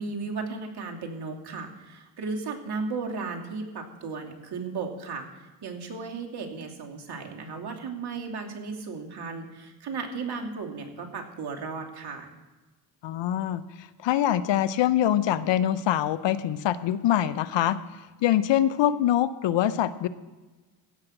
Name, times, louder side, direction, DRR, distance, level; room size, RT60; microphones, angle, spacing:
voice 1, 0.0-12.3, right 4 dB, 50° right, 2 dB, 2.8 m, -35 dB
voice 2, 13.0-17.8 18.2-20.1, left 11 dB, 60° left, 14 dB, 0.8 m, -24 dB
16.5 x 5.9 x 6.5 m, 1.2 s
supercardioid pair, 65°, 49 cm